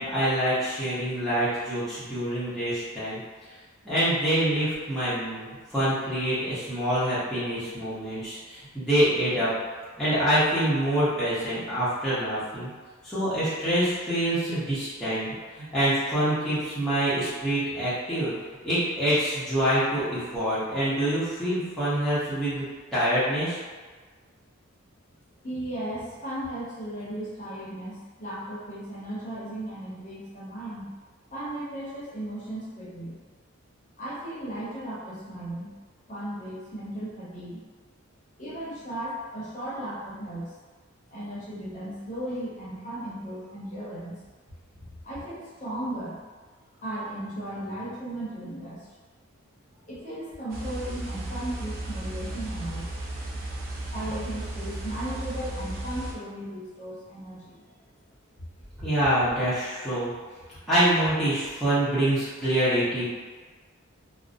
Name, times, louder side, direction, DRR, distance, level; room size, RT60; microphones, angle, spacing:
voice 1, 0.0-3.2 3.8-9.5 10.0-12.7 13.0-15.2 15.5-18.3 18.6-22.7 22.9-23.6 58.8-60.1 60.7-63.1, right 1 dB, ahead, -14 dB, 0.7 m, -26 dB
voice 2, 25.4-30.9 31.3-33.2 34.0-35.7 36.1-37.6 38.4-40.5 41.1-44.2 44.8-46.2 46.8-48.8 49.9-52.9 53.3-53.4 53.9-57.6, right 1 dB, 40° left, -9 dB, 0.7 m, -36 dB
sound 1, 50.5-56.1, right 1 dB, 45° right, 0.4 m, -35 dB
2.5 x 2.0 x 2.5 m, 1.4 s
head